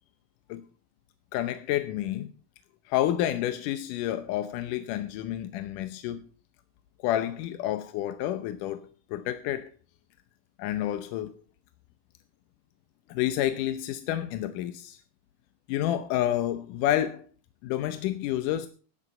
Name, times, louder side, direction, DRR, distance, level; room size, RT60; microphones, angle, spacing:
voice 1, 1.3-2.3 2.9-6.3 7.0-8.8 9.1-9.7 10.6-11.3 13.1-15.0 15.7-17.3 17.6-18.7, left 12 dB, 90° left, 2.4 m, -29 dB
15.0 x 10.0 x 5.5 m
omnidirectional pair, 3.6 m